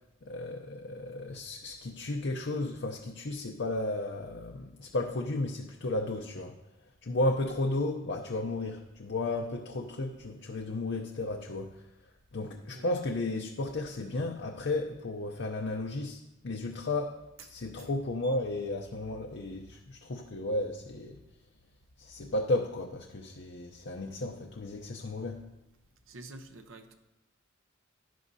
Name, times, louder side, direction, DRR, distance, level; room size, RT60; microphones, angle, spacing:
voice 1, 0.2-6.5 7.0-21.2 22.0-25.4, left 2 dB, 60° left, 2 dB, 0.6 m, -34 dB
voice 2, 26.1-27.0, right 2 dB, 80° right, 6 dB, 0.9 m, -48 dB
11.0 x 11.0 x 2.7 m, 0.97 s
head